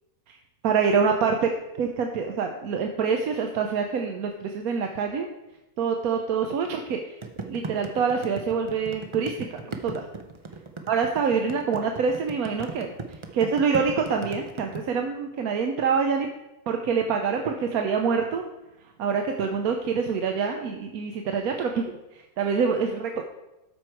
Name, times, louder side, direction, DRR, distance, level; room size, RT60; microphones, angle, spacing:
voice 1, 0.6-1.5 1.8-5.3 5.8-10.1 10.9-16.3 16.7-18.4 19.0-23.2, right 5 dB, 70° right, 4 dB, 1.1 m, -26 dB
sound 1, 7.2-14.8, right 3 dB, 55° right, 0.3 m, -36 dB
12.5 x 4.7 x 4.5 m, 0.97 s
omnidirectional pair, 1.6 m